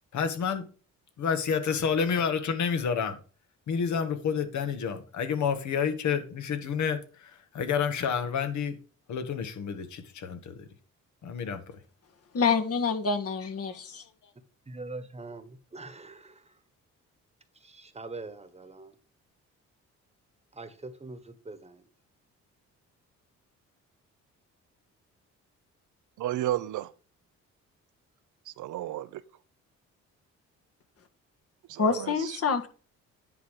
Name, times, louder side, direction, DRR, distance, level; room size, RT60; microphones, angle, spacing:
voice 1, 0.1-0.7 1.2-3.2 3.7-8.7 9.1-10.5 11.2-11.6 13.7-13.8, left 6 dB, 70° left, 1.8 m, -29 dB
voice 2, 12.3-14.0 31.8-32.7, left 5 dB, 50° left, 1.7 m, -27 dB
voice 3, 14.7-16.6 17.6-18.9 20.5-21.8, right 3 dB, 20° right, 1.3 m, -43 dB
voice 4, 26.2-26.9 28.5-29.2 31.7-32.4, right 13 dB, 80° right, 0.7 m, -32 dB
10.0 x 4.1 x 6.4 m
cardioid pair, 90°, 30 cm